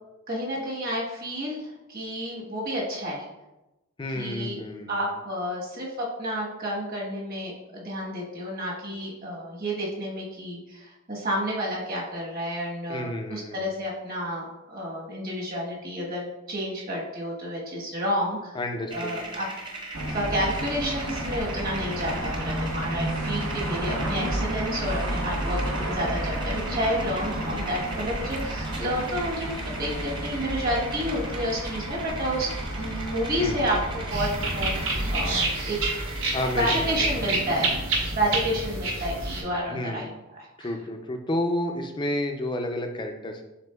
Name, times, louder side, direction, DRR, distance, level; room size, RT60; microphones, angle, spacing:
voice 1, 0.3-3.3 4.1-4.6 4.9-18.6 18.9-19.5 20.1-36.1 36.5-40.1 40.6-40.7, equal, 45° right, -3 dB, 1.2 m, -30 dB
voice 2, 4.0-5.0 12.9-13.6 18.5-19.4 33.4-33.6 36.3-37.4 39.7-40.1 40.6-43.4, left 1 dB, 20° left, 5 dB, 0.4 m, -31 dB
sound 1, 18.9-37.4, right 2 dB, 20° right, 0.7 m, -39 dB
sound 2, 19.9-35.4, right 1 dB, 85° right, 0.7 m, -31 dB
sound 3, 34.1-39.4, right 2 dB, 65° right, 1.1 m, -28 dB
6.6 x 3.4 x 2.3 m, 0.99 s
head